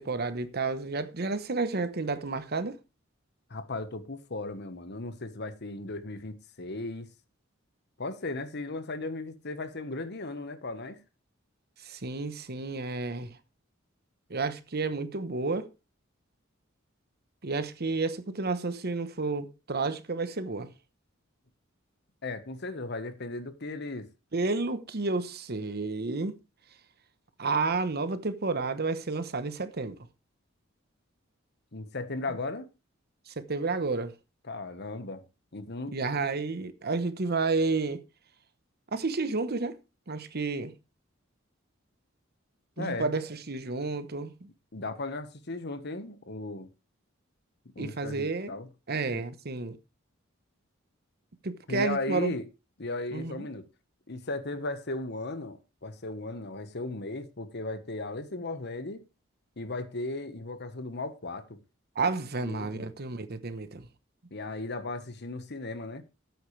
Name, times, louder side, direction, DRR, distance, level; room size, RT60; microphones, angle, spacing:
voice 1, 0.0-2.8 11.8-13.3 14.3-15.7 17.4-20.7 24.3-26.4 27.4-30.0 33.3-34.1 35.9-38.0 38.9-39.8 40.1-40.7 42.8-44.5 47.8-48.6 48.9-49.8 51.4-52.4 53.1-53.5 61.9-63.9, right 3 dB, 50° right, 1.0 m, -31 dB
voice 2, 3.5-7.1 8.0-11.0 22.2-24.1 31.7-32.7 34.4-35.2 35.5-36.0 42.8-43.1 44.7-46.7 47.7-48.7 49.1-49.2 51.7-52.5 52.8-53.6 54.1-59.0 59.6-61.6 62.4-62.9 64.3-66.0, left 2 dB, 55° left, 1.3 m, -36 dB
13.5 x 9.2 x 3.3 m
head